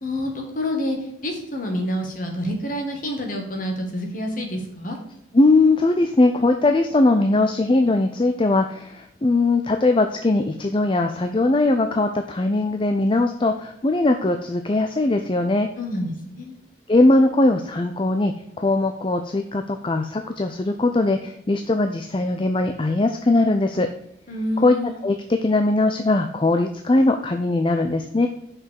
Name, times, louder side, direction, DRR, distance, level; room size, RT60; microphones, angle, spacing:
voice 1, 0.0-5.0 15.8-16.6 24.3-25.1, left 1 dB, 45° left, 2 dB, 1.9 m, -28 dB
voice 2, 5.3-15.7 16.9-23.9 24.6-24.8 25.0-28.3, left 2 dB, 25° left, 6 dB, 0.4 m, -20 dB
6.0 x 5.3 x 6.6 m, 0.79 s
head